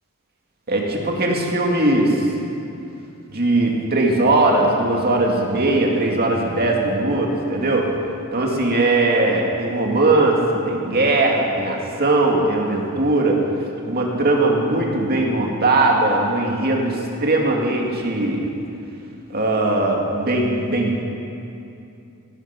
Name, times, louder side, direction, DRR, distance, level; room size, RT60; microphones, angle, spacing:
voice 1, 0.7-2.2 3.3-7.9 8.3-10.4 10.7-13.4 13.9-18.5 19.3-21.0, right 2 dB, 45° right, 0 dB, 2.3 m, -19 dB
18.0 x 12.5 x 6.0 m, 2.7 s
head